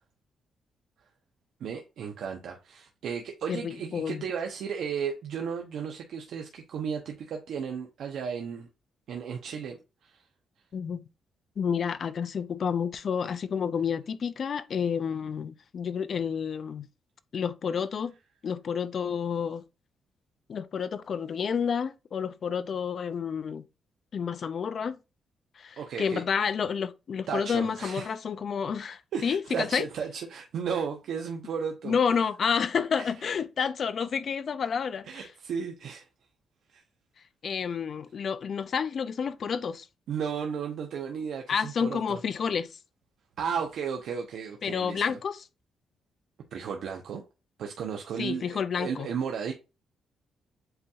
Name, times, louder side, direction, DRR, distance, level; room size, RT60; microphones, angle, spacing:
voice 1, 1.6-8.7 9.1-10.2 25.8-26.2 27.3-28.2 29.1-32.0 33.0-33.1 35.0-36.1 36.7-36.8 40.1-42.2 43.4-45.2 46.5-47.2 47.6-49.5, right 7 dB, 75° right, 0.7 m, -34 dB
voice 2, 3.5-4.2 10.7-11.1 11.6-16.9 17.3-18.1 18.4-19.6 20.5-23.6 24.1-25.0 25.6-29.9 31.8-35.3 37.4-39.9 41.5-42.8 44.6-45.5 48.2-49.1, left 6 dB, 55° left, 0.4 m, -30 dB
7.8 x 2.8 x 2.3 m
cardioid pair, 100°, 0 cm